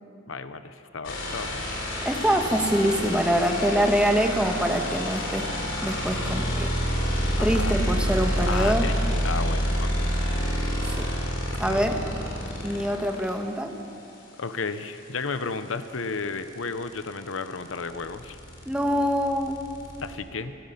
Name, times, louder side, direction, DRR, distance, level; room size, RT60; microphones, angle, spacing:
voice 1, 0.3-1.8 7.4-7.8 8.5-10.1 11.5-11.9 12.7-12.8 14.4-18.4 20.0-20.6, left 4 dB, 85° left, 11 dB, 0.9 m, -33 dB
sound 1, 1.0-13.3 15.4-15.5 15.7-20.1, equal, 65° left, 3.8 m, -28 dB
voice 2, 2.0-5.5 5.8-6.7 7.4-8.9 10.8-11.1 11.6-12.0 12.6-13.7 18.6-19.6, equal, 5° right, 3 dB, 1.4 m, -24 dB
28.5 x 16.0 x 5.8 m, 2.7 s
head